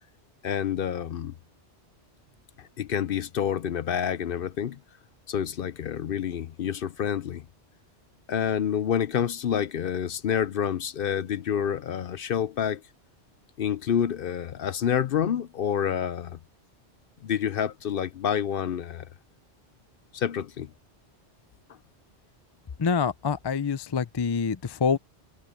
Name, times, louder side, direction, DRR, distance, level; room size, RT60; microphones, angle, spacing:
voice 1, 0.4-1.3 2.6-4.8 5.3-7.5 8.3-12.8 13.6-16.4 17.2-19.1 20.1-20.7, left 8 dB, 60° left, 0.7 m, -28 dB
voice 2, 22.8-25.0, left 6 dB, 35° left, 0.4 m, -26 dB
omnidirectional pair, 1.2 m